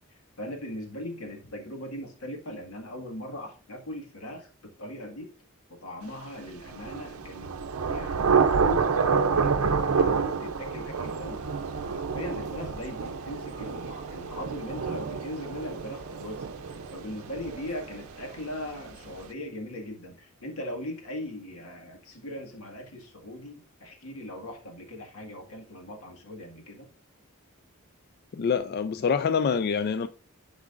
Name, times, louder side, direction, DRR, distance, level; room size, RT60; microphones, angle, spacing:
voice 1, 0.4-5.3 5.7-7.6 7.9-16.5 16.9-26.9, left 1 dB, 80° left, 1.9 m, -39 dB
Thunder / Rain, 6.6-18.2, right 5 dB, 75° right, 0.6 m, -28 dB
sound 1, 11.0-19.3, right 3 dB, 35° right, 1.3 m, -51 dB
voice 2, 28.3-30.1, left 6 dB, 45° left, 0.3 m, -26 dB
12.0 x 4.9 x 2.5 m
head